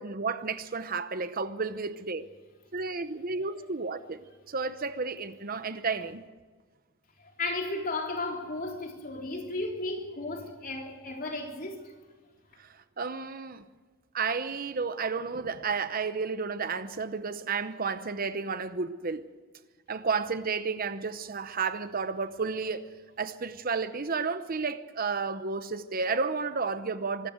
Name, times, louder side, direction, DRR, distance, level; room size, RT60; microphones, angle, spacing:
voice 1, 0.0-2.3 2.7-6.2 12.6-13.6 14.1-19.3 19.9-22.9 23.2-27.3, right 4 dB, 45° right, 0.8 m, -32 dB
voice 2, 7.4-11.9, left 2 dB, 40° left, 3.6 m, -34 dB
24.5 x 13.5 x 8.1 m
head